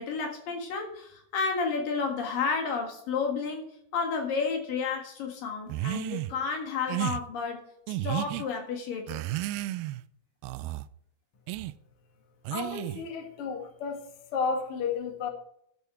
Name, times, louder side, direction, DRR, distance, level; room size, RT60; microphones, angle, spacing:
voice 1, 0.0-3.6 3.9-7.6 7.9-9.2, left 5 dB, 65° left, 3 dB, 3.3 m, -31 dB
sound 1, 5.7-6.3 6.9-7.2 7.9-8.4 9.1-10.0 10.4-10.9 11.5-11.7 12.5-13.1, right 15 dB, 85° right, 2.4 m, -32 dB
voice 2, 12.5-14.0 14.3-15.3, left 5 dB, 40° left, 2 dB, 2.6 m, -32 dB
13.0 x 8.2 x 4.5 m, 0.70 s
omnidirectional pair, 4.3 m